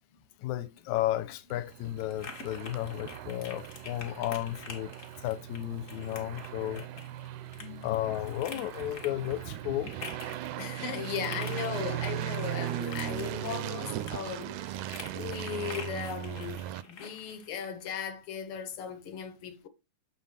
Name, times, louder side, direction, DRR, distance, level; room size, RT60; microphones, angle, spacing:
voice 1, 0.4-4.9 5.2-6.8 7.6-9.9, left 14 dB, 80° left, 2.0 m, -33 dB
sound 1, 0.8-17.9, left 4 dB, 45° left, 1.0 m, -48 dB
sound 2, 1.5-16.8, right 13 dB, 80° right, 1.9 m, -38 dB
voice 2, 10.6-19.7, left 7 dB, 60° left, 1.6 m, -37 dB
7.4 x 4.1 x 5.7 m
omnidirectional pair, 3.5 m